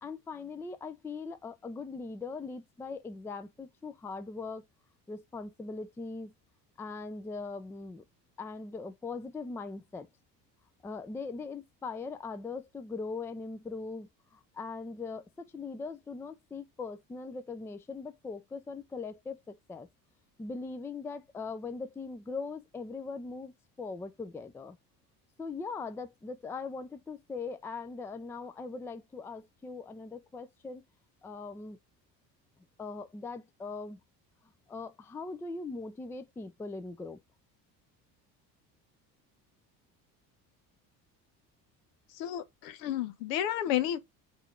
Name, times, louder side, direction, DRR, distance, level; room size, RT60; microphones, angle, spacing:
voice 1, 0.0-4.6 5.1-6.3 6.8-8.0 8.4-10.1 10.8-19.9 20.4-24.8 25.4-30.8 31.2-31.8 32.8-34.0 34.7-37.2, left 4 dB, 5° left, 0.4 m, -40 dB
voice 2, 42.2-44.0, left 11 dB, 70° left, 0.9 m, -31 dB
3.7 x 3.6 x 3.6 m
hypercardioid pair, 65°, 50 cm